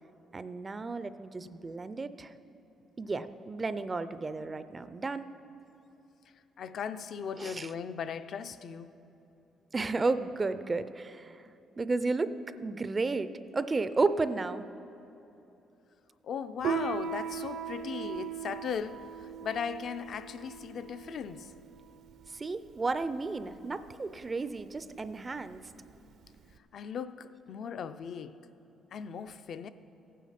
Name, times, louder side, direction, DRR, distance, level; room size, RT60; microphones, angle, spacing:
voice 1, 0.3-2.3 3.0-5.3 7.4-7.7 9.7-11.4 11.8-12.3 12.6-14.6 22.3-25.6, right 3 dB, 25° right, 0.4 m, -32 dB
voice 2, 6.6-9.0 16.2-21.5 26.7-28.4 28.9-29.7, left 7 dB, 55° left, 0.5 m, -38 dB
Piano, 16.6-26.6, right 7 dB, 70° right, 0.6 m, -39 dB
15.5 x 9.3 x 5.8 m
cardioid pair, 125°, 0 cm